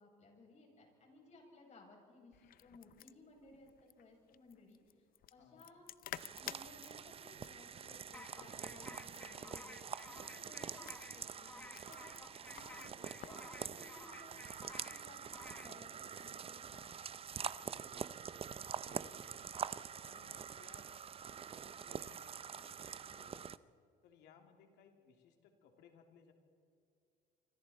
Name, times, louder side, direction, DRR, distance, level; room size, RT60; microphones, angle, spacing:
voice 1, 0.0-5.9 6.4-12.8 13.1-17.0, left 2 dB, 45° left, 0 dB, 7.2 m, -60 dB
sound 1, 2.3-13.4, left 12 dB, 60° left, 0.6 m, -54 dB
voice 2, 5.4-5.7 12.7-13.2 17.7-18.2 18.8-19.5 20.0-21.0 21.5-23.5 24.0-26.3, left 6 dB, 85° left, 4 dB, 2.9 m, -64 dB
sound 2, 6.1-23.6, right 7 dB, 35° right, 0.6 m, -46 dB
sound 3, 8.1-15.8, left 2 dB, 10° left, 0.4 m, -55 dB
27.0 x 25.0 x 4.3 m, 2.4 s
cardioid pair, 110°, 17 cm